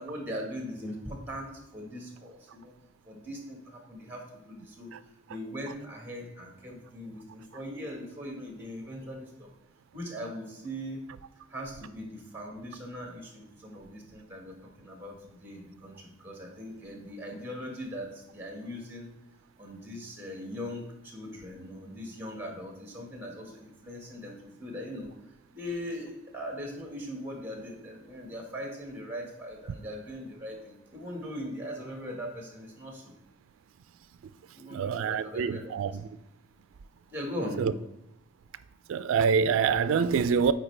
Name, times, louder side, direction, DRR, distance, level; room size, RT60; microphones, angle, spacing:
voice 1, 0.0-2.7 3.0-5.0 5.3-9.5 9.9-11.0 11.5-19.1 19.6-25.1 25.5-33.1 34.5-36.0 37.1-37.6, equal, 10° right, 1.4 m, -40 dB
voice 2, 34.7-35.9 37.6-37.7 38.9-40.5, right 6 dB, 85° right, 0.3 m, -25 dB
8.8 x 4.3 x 3.3 m
head